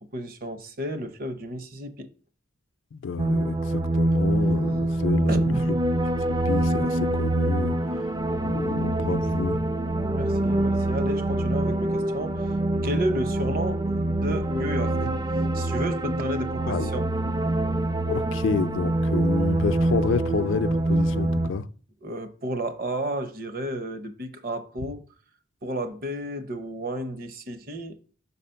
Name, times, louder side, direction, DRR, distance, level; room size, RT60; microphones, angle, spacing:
voice 1, 0.0-2.1 5.3-5.8 10.1-12.5 12.8-17.1 22.0-25.0 25.6-28.0, right 1 dB, 45° right, 0.8 m, -32 dB
voice 2, 2.9-5.5 6.5-7.8 8.4-9.6 16.7-16.9 18.1-21.7, left 4 dB, 75° left, 0.4 m, -29 dB
sound 1, 3.2-21.5, right 1 dB, 20° right, 0.4 m, -25 dB
5.8 x 4.1 x 5.6 m
head